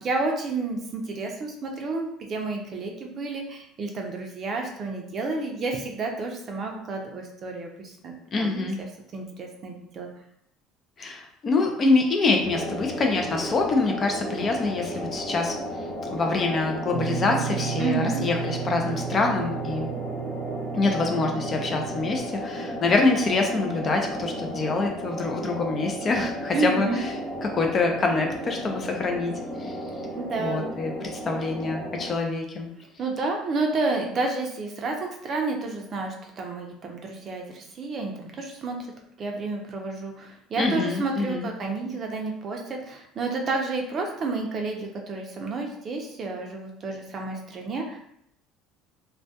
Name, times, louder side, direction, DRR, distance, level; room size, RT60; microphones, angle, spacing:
voice 1, 0.0-8.7 9.1-10.1 17.8-18.2 26.5-27.0 30.2-30.7 33.0-38.8 39.2-48.0, right 3 dB, 35° right, 1 dB, 0.4 m, -30 dB
voice 2, 8.3-8.8 11.0-15.5 16.1-19.9 20.7-26.9 27.4-29.3 29.6-29.8 30.4-32.7 40.6-41.5, left 3 dB, 30° left, 2 dB, 0.3 m, -25 dB
sound 1, 12.4-32.1, equal, 50° left, 0.9 m, -33 dB
Guitar, 16.9-22.2, right 10 dB, 85° left, 0.9 m, -34 dB
2.2 x 2.1 x 2.7 m, 0.72 s
cardioid pair, 135°, 0 cm